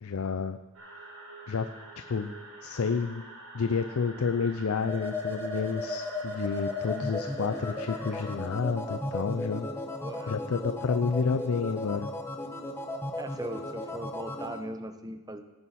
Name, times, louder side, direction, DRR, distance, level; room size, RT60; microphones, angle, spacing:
voice 1, 0.0-0.6 1.5-1.7 2.1-2.3 2.6-3.2 3.5-9.7 10.3-12.1, left 5 dB, 75° left, 10 dB, 0.5 m, -30 dB
sound 1, 0.7-8.3, right 2 dB, 85° right, 5.2 m, -47 dB
sound 2, 4.8-14.6, left 2 dB, 10° left, 1.0 m, -35 dB
voice 2, 9.9-10.3 13.2-15.4, right 1 dB, 15° right, 8 dB, 0.7 m, -39 dB
17.5 x 9.2 x 4.2 m, 1.1 s
head